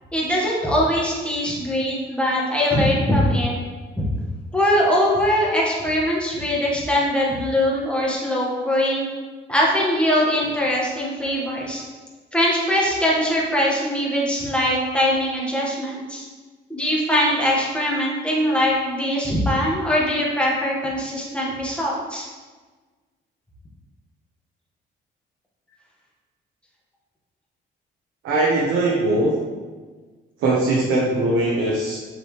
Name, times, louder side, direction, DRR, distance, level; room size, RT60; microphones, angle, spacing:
voice 1, 0.1-3.5 4.0-4.1 4.5-9.1 9.5-11.8 12.3-16.2 16.7-22.3, equal, 5° left, -4 dB, 1.7 m, -21 dB
voice 2, 28.2-29.3 30.4-32.0, right 2 dB, 80° right, -4 dB, 1.1 m, -20 dB
6.7 x 4.7 x 3.3 m, 1.4 s
cardioid pair, 90°, 20 cm